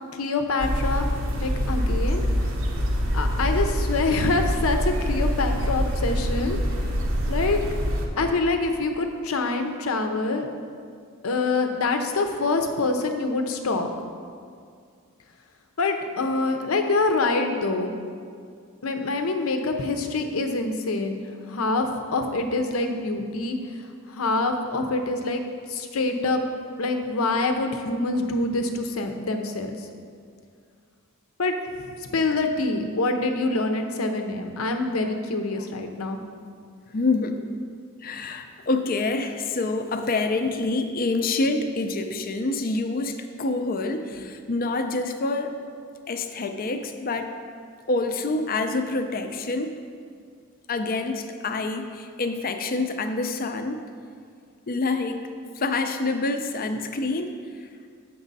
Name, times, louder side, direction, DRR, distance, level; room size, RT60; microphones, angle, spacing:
voice 1, 0.1-1.1 1.4-2.2 3.1-6.6 7.3-7.6 8.2-10.5 11.2-13.9 15.8-17.9 18.8-21.2 21.5-25.4 25.7-26.4 26.8-29.9 31.4-36.2, left 3 dB, 80° left, 6 dB, 0.7 m, -25 dB
sound 1, 0.6-8.0, equal, 65° right, 0.9 m, -25 dB
voice 2, 36.9-37.4 38.0-45.6 46.1-47.3 47.9-49.8 50.7-53.8 54.7-55.3 55.5-57.3 57.6-57.7, left 3 dB, 45° left, 7 dB, 0.5 m, -27 dB
7.3 x 6.1 x 4.0 m, 2.2 s
head